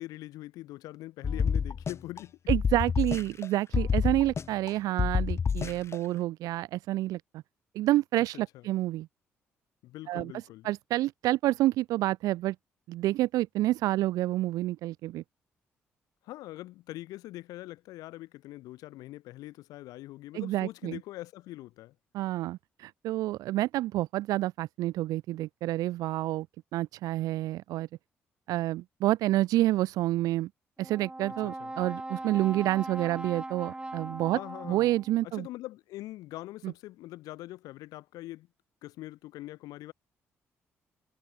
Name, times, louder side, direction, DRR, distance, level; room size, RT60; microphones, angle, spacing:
voice 1, 0.0-2.4 8.3-8.4 9.8-10.7 16.2-21.9 31.4-31.7 34.3-34.9 35.2-38.5 38.8-39.9, left 17 dB, 80° left, 2.4 m, -43 dB
sound 1, 1.2-2.2 2.5-3.5 3.7-4.7 5.0-6.0, left 6 dB, 45° left, 2.3 m, -28 dB
voice 2, 2.5-7.4 7.7-9.1 10.1-12.5 12.9-15.2 20.3-21.0 22.1-26.5 26.7-27.9 28.5-30.5 30.8-34.4 34.6-35.5 36.6-36.7, right 16 dB, 75° right, 1.4 m, -28 dB
Brass instrument, 30.8-35.2, right 2 dB, 15° right, 2.1 m, -40 dB
hypercardioid pair, 55°, 6 cm